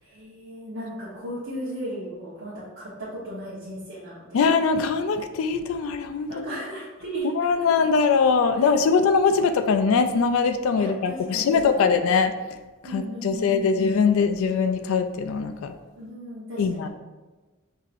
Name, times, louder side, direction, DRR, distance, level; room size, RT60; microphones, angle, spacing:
voice 1, 0.0-4.5 6.3-7.3 8.6-8.7 10.8-11.9 12.8-13.8 16.0-16.9, right 1 dB, 75° right, -9 dB, 1.0 m, -36 dB
voice 2, 4.3-6.5 7.4-12.3 12.9-15.7 16.6-16.9, left 5 dB, 80° left, 8 dB, 0.3 m, -22 dB
5.6 x 2.7 x 2.5 m, 1.2 s
head